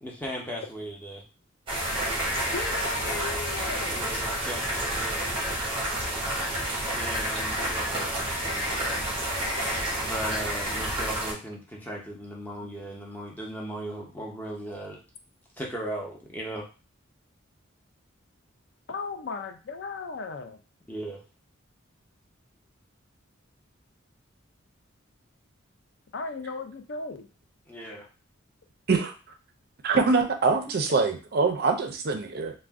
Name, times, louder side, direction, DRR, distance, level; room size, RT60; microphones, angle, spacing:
voice 1, 0.0-1.2 3.9-5.2 7.0-9.2 10.0-15.0 15.6-16.7 20.9-21.2 27.7-28.1, right 1 dB, 10° left, -2 dB, 0.6 m, -37 dB
sound 1, 1.7-11.3, right 1 dB, 25° right, 0.8 m, -29 dB
voice 2, 2.5-4.1 18.9-20.6 26.1-27.3, left 4 dB, 55° left, 7 dB, 0.4 m, -36 dB
voice 3, 29.8-32.5, right 4 dB, 50° right, 6 dB, 0.4 m, -24 dB
2.4 x 2.1 x 3.4 m, 0.33 s
head